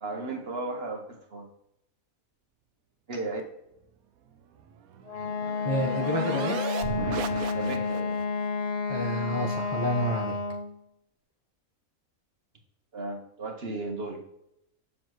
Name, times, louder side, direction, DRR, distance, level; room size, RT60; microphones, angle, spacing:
voice 1, 0.0-1.5 3.1-3.4 7.5-8.2 12.9-14.2, right 2 dB, 45° right, 3 dB, 1.2 m, -35 dB
sound 1, 4.6-8.2, right 8 dB, 90° right, 1.1 m, -36 dB
Wind instrument woodwind instrument, 5.1-10.8, left 5 dB, 55° left, 0.4 m, -30 dB
voice 2, 5.6-6.6 8.9-10.4, equal, 25° left, -2 dB, 0.7 m, -29 dB
7.1 x 6.0 x 3.0 m, 0.81 s
omnidirectional pair, 1.5 m